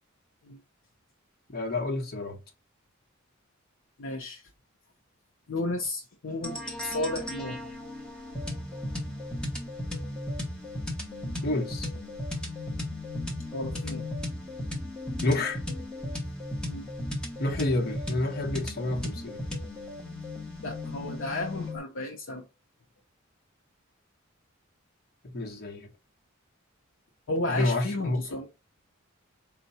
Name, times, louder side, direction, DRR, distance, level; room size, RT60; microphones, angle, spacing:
voice 1, 1.5-2.4 11.4-11.9 15.2-15.6 17.4-19.4 25.2-25.9 27.5-28.2, left 2 dB, 50° left, 1.0 m, -29 dB
voice 2, 4.0-4.4 5.5-7.6 13.5-14.0 16.7-16.9 20.6-22.4 27.3-28.5, left 2 dB, 65° left, 0.7 m, -33 dB
sound 1, 6.4-21.8, left 1 dB, 5° left, 1.0 m, -35 dB
4.5 x 2.2 x 4.0 m
head